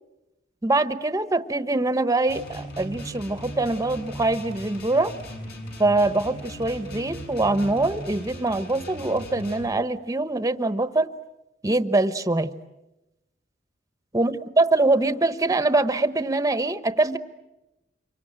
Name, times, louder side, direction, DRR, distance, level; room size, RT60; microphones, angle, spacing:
voice 1, 0.6-5.1 5.8-11.1 11.6-12.5 14.1-17.2, right 2 dB, 20° right, 12 dB, 1.0 m, -23 dB
sound 1, 2.3-9.7, equal, 60° left, 7.2 m, -38 dB
27.5 x 24.5 x 8.9 m, 0.96 s
head